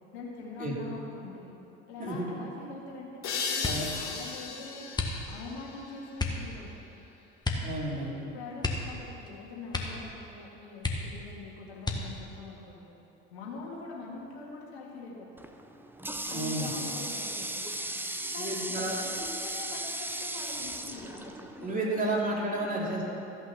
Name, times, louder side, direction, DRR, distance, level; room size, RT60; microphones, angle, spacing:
voice 1, 0.1-1.6 1.9-4.9 5.3-6.8 8.3-12.9 13.3-15.4 16.2-17.7 18.3-22.1 22.5-22.8, left 3 dB, 70° left, -3 dB, 2.5 m, -44 dB
sound 1, 3.2-6.6, left 5 dB, 50° left, 1.9 m, -36 dB
sound 2, 3.6-4.0 4.9-5.6 6.1-6.5 7.4-8.1 8.6-9.3 9.7-10.1 10.4-10.5 10.8-11.3 11.8-12.3 13.1-13.7 14.1-14.4, left 3 dB, 10° left, 1.5 m, -33 dB
voice 2, 7.6-8.2 16.3-16.8 18.4-18.9 21.6-23.0, right 1 dB, 25° right, -3 dB, 3.2 m, -31 dB
Water tap faucet, 15.4-21.9, right 1 dB, 5° right, 0.8 m, -36 dB
14.0 x 6.1 x 7.2 m, 2.9 s
figure-of-eight pair, 60°, 34 cm